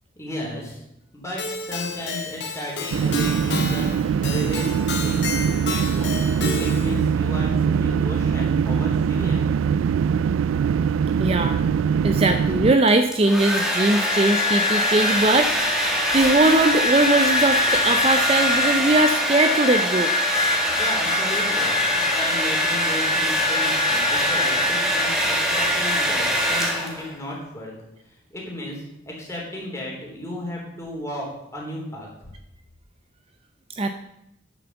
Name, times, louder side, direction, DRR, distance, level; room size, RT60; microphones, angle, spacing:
voice 1, 0.1-0.8 1.1-4.7 5.0-6.2 6.5-9.5 20.8-27.7 28.3-32.3, left 1 dB, 15° left, -2 dB, 3.3 m, -34 dB
Keyboard (musical), 1.4-7.0, left 4 dB, 60° left, 1.8 m, -31 dB
sound 1, 2.9-12.8, right 7 dB, 90° right, 0.3 m, -22 dB
voice 2, 11.2-11.6 12.0-15.5 16.1-20.1 33.7-33.9, right 2 dB, 30° right, 7 dB, 0.5 m, -20 dB
Domestic sounds home sounds, 12.9-27.2, left 1 dB, 5° right, 1.8 m, -22 dB
9.7 x 7.0 x 7.1 m, 0.83 s
head